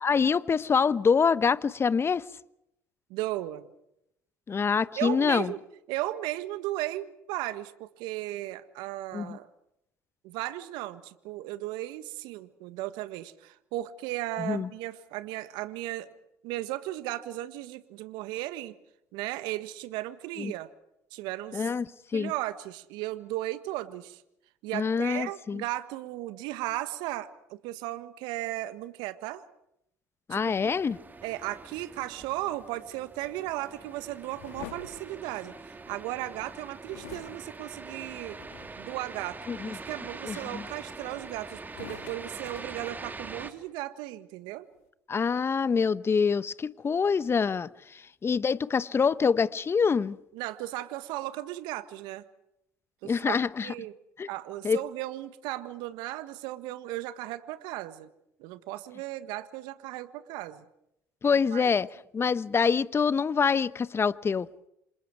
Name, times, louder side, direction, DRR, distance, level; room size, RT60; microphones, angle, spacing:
voice 1, 0.0-2.2 4.5-5.5 9.1-9.4 14.4-14.7 20.4-20.5 21.5-21.8 22.1-22.3 24.7-25.6 30.3-31.0 39.5-39.8 40.2-40.6 45.1-47.7 48.2-50.2 53.0-53.7 54.2-54.3 54.6-54.8 61.2-61.9 62.1-64.5, left 5 dB, 30° left, 1.0 m, -25 dB
voice 2, 3.1-3.7 5.0-5.6 5.9-9.5 10.2-16.1 16.4-18.8 19.1-20.7 21.1-21.7 22.1-24.2 24.6-29.4 30.3-30.7 31.2-38.4 38.8-44.7 50.3-52.2 53.0-53.9 54.3-58.1 58.4-60.6 61.5-61.7, right 16 dB, 70° right, 1.6 m, -36 dB
sound 1, 30.4-43.5, right 3 dB, 20° right, 2.9 m, -44 dB
sound 2, 34.3-36.0 36.9-38.9 39.5-39.9 40.4-41.2 41.6-43.5, left 11 dB, 75° left, 2.4 m, -48 dB
29.0 x 27.0 x 4.8 m
hypercardioid pair, 60°, 8 cm